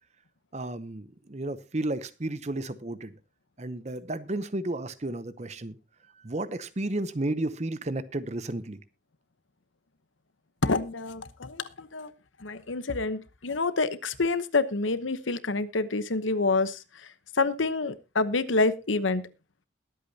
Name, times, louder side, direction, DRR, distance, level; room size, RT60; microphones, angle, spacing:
voice 1, 0.5-3.2 3.6-5.8 6.2-8.8, right 2 dB, 35° right, 0.8 m, -32 dB
voice 2, 10.6-12.1 12.4-16.8 17.4-19.3, left 3 dB, 85° left, 1.0 m, -27 dB
21.5 x 8.5 x 2.8 m
head